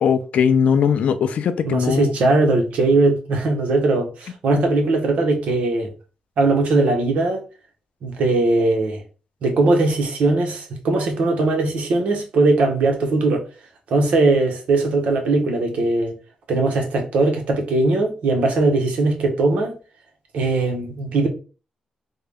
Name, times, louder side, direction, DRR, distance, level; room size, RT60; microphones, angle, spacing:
voice 1, 0.0-2.1 4.5-4.6, left 7 dB, 75° left, 0.4 m, -19 dB
voice 2, 1.6-5.9 6.4-7.4 8.0-9.0 9.4-13.4 13.9-16.1 16.5-19.8 20.3-21.3, right 2 dB, 80° right, 1.0 m, -19 dB
3.7 x 2.2 x 3.4 m
wide cardioid pair, 140°, 2 cm